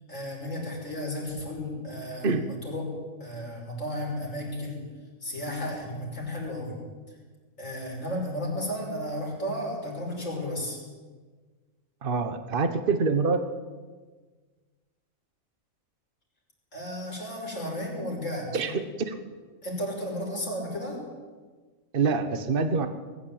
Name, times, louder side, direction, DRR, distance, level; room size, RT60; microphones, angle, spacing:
voice 1, 0.1-2.9 3.2-4.8 5.2-6.7 7.6-10.8 16.7-18.5 19.6-21.0, left 1 dB, 70° left, -2 dB, 6.4 m, -33 dB
voice 2, 12.0-13.4 18.5-18.7 19.0-19.1 21.9-22.9, right 4 dB, 45° right, 9 dB, 1.4 m, -25 dB
20.5 x 15.5 x 8.9 m, 1.4 s
omnidirectional pair, 1.4 m